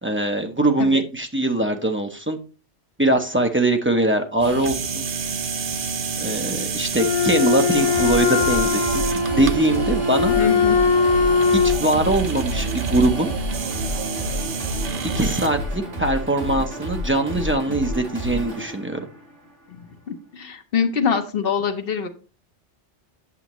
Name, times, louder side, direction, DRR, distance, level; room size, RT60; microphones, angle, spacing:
voice 1, 0.0-2.4 3.0-5.0 6.2-9.0 9.3-10.3 11.5-13.3 15.0-19.0, right 2 dB, 15° right, 4 dB, 0.6 m, -22 dB
sound 1, 4.4-15.5, right 5 dB, 55° right, 0.8 m, -29 dB
Wind instrument woodwind instrument, 6.9-11.8, left 5 dB, 40° left, 0.4 m, -20 dB
sound 2, 7.7-19.8, left 1 dB, 85° right, 2.2 m, -30 dB
voice 2, 10.4-10.8 19.7-19.8 20.1-22.1, left 6 dB, 55° left, 6 dB, 1.1 m, -24 dB
8.3 x 6.5 x 3.0 m, 0.36 s
omnidirectional pair, 1.2 m